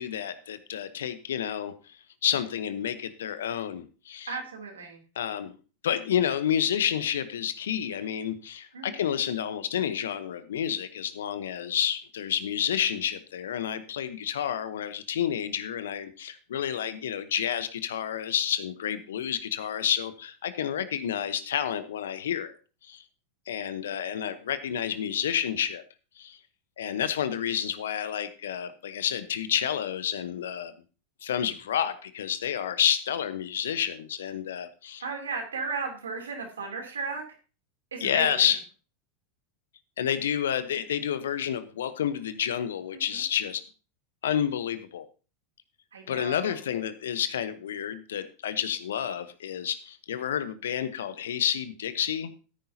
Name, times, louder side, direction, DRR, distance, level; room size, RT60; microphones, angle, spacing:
voice 1, 0.0-1.9 2.2-4.4 5.2-5.5 5.8-22.5 22.9-23.0 23.5-25.8 26.2-26.4 26.8-30.7 31.2-35.0 38.0-38.6 40.0-43.6 44.2-45.0 46.1-52.3, left 9 dB, 70° left, 13 dB, 0.9 m, -29 dB
voice 2, 4.3-5.0 8.7-9.0 35.0-37.2 37.9-38.5 42.9-43.2 45.9-46.6, right 4 dB, 80° right, 2 dB, 3.0 m, -35 dB
14.0 x 9.6 x 2.8 m, 0.34 s
figure-of-eight pair, 90°, 0 cm